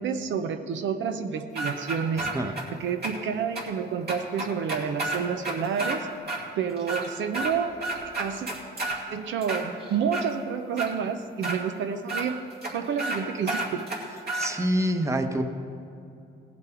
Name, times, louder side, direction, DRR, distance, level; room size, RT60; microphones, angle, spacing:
voice 1, 0.0-2.3 2.7-6.1 6.6-7.8 8.2-8.5 9.1-12.4 12.7-13.8, right 7 dB, 75° right, 7 dB, 0.7 m, -29 dB
sound 1, 1.6-2.6 3.0-3.1 3.6-3.7 4.1-6.0 6.3-6.4 6.8-7.5 7.8-9.0 9.4-10.3 10.8-10.9 11.4-11.6 12.1-12.2 12.6-12.7 13.0-13.2 13.5-14.5, right 2 dB, 55° right, 2.5 m, -30 dB
voice 2, 14.3-15.4, right 1 dB, 15° right, 6 dB, 1.0 m, -26 dB
17.5 x 7.4 x 4.5 m, 2.6 s
cardioid pair, 90°, 20 cm